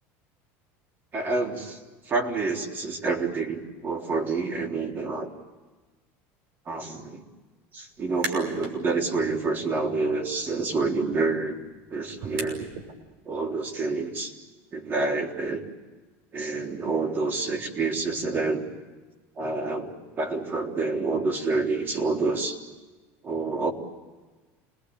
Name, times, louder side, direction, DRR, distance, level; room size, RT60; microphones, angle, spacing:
voice 1, 1.1-1.8 2.1-5.3 6.7-7.2 7.7-11.6 11.9-12.7 13.3-14.3 14.7-15.6 16.3-18.6 19.4-22.6 23.2-23.7, right 3 dB, 30° right, 2 dB, 3.6 m, -28 dB
sound 1, 8.0-8.8 9.2-12.9, right 4 dB, 65° right, 6.0 m, -40 dB
28.5 x 20.5 x 8.9 m, 1.3 s
supercardioid pair, 140°, 7 cm